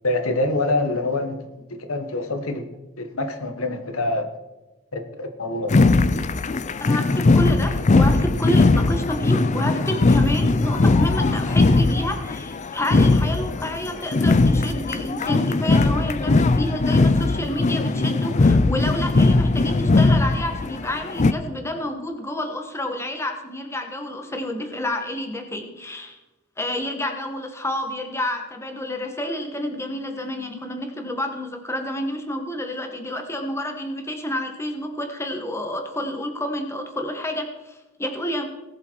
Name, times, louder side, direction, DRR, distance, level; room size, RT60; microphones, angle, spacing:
voice 1, 0.0-1.4 1.9-2.6 3.0-4.3 4.9-5.7, left 2 dB, 75° left, 6 dB, 1.5 m, -25 dB
sound 1, 5.7-21.3, left 3 dB, 35° left, 0.4 m, -19 dB
voice 2, 6.8-26.2 26.6-38.5, left 1 dB, 10° left, 4 dB, 1.4 m, -29 dB
19.0 x 6.9 x 4.6 m, 1.1 s
head